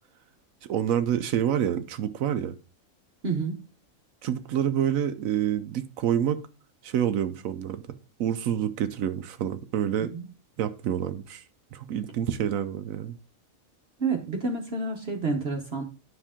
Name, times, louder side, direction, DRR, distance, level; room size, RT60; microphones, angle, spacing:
voice 1, 0.7-2.5 4.2-6.4 6.8-7.8 8.2-10.1 10.6-11.4 11.7-13.2, right 10 dB, 80° right, 1.1 m, -27 dB
voice 2, 3.2-3.6 10.1-10.3 14.0-15.8, right 4 dB, 50° right, 1.3 m, -29 dB
9.9 x 5.9 x 3.6 m
omnidirectional pair, 1.4 m